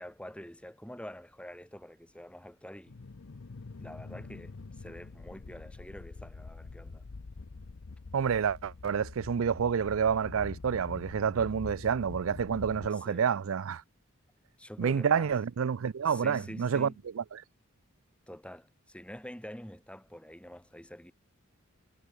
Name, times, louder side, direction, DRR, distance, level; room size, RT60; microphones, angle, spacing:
voice 1, 0.0-3.0 3.8-7.0 12.9-13.3 14.6-15.3 16.1-17.0 18.3-21.1, equal, 5° left, 4.3 m, -46 dB
sound 1, 2.9-12.9, left 3 dB, 65° left, 0.7 m, -45 dB
voice 2, 8.1-13.8 14.8-16.9 17.2-17.4, right 7 dB, 75° right, 0.4 m, -29 dB
head